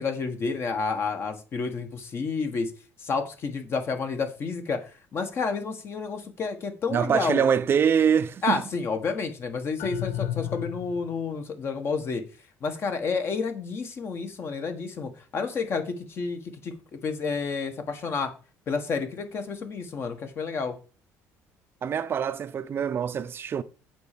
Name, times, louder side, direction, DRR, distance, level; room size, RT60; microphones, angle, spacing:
voice 1, 0.0-2.7 3.0-7.4 8.4-12.2 12.6-16.7 17.0-18.3 18.7-20.8, left 4 dB, 40° left, 1.5 m, -30 dB
voice 2, 6.9-8.6 21.8-23.6, right 7 dB, 40° right, 0.5 m, -24 dB
sound 1, 9.8-11.3, left 12 dB, 80° left, 0.6 m, -32 dB
8.3 x 4.4 x 6.7 m
cardioid pair, 130°, 6 cm